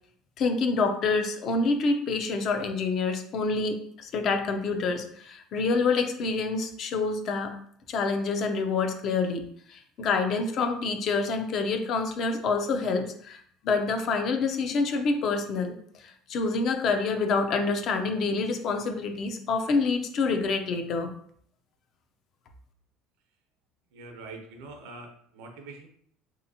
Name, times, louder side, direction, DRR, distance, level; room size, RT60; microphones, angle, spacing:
voice 1, 0.4-7.5 7.9-21.1, left 4 dB, 50° left, 5 dB, 0.5 m, -27 dB
voice 2, 23.9-25.9, right 3 dB, 85° right, 3 dB, 0.7 m, -44 dB
3.4 x 2.8 x 2.7 m, 0.63 s
cardioid pair, 125°, 0 cm